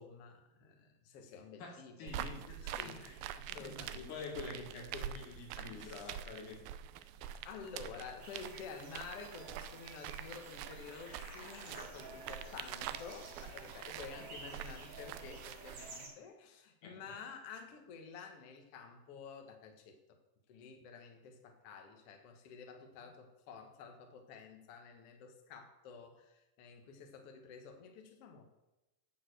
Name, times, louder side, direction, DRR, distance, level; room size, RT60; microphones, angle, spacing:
voice 1, 0.0-2.2 2.6-4.1 5.6-6.2 7.4-20.0 20.5-28.4, left 5 dB, 80° left, 4 dB, 1.3 m, -51 dB
voice 2, 1.6-3.2 3.5-6.6 16.8-17.2, left 3 dB, 60° left, 1 dB, 3.0 m, -47 dB
sound 1, 2.1-16.0, right 10 dB, 80° right, 2.2 m, -46 dB
sound 2, 8.2-16.1, right 3 dB, 65° right, 4.4 m, -53 dB
sound 3, 10.2-14.9, left 1 dB, 20° left, 1.4 m, -60 dB
11.5 x 4.5 x 7.9 m, 0.99 s
omnidirectional pair, 4.4 m